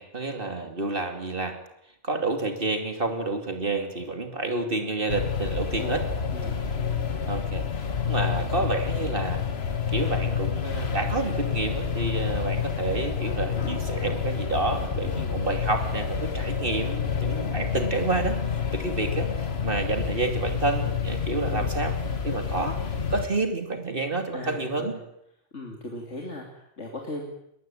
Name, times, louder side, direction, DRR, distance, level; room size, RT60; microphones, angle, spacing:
voice 1, 0.0-1.6 2.0-6.0 7.3-7.6 8.0-9.4 9.9-21.9 22.2-22.8 23.1-24.9, right 3 dB, 50° right, 5 dB, 2.9 m, -29 dB
sound 1, 5.1-23.3, left 6 dB, 60° left, 1.7 m, -28 dB
voice 2, 24.3-25.0 25.5-27.3, left 1 dB, 75° left, 0 dB, 3.2 m, -38 dB
21.5 x 20.0 x 9.1 m, 0.79 s
omnidirectional pair, 1.2 m